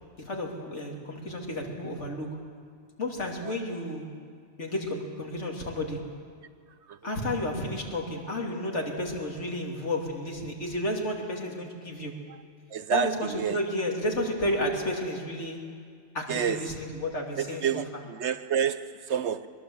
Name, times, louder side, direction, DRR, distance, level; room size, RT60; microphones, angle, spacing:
voice 1, 0.2-2.3 3.0-4.0 4.6-6.0 7.0-12.1 12.9-15.6 16.1-17.8, left 1 dB, 65° left, 3.1 m, -32 dB
voice 2, 12.7-13.6 16.3-16.7 17.4-19.5, right 8 dB, 65° right, 1.0 m, -29 dB
22.5 x 20.5 x 7.9 m
omnidirectional pair, 1.3 m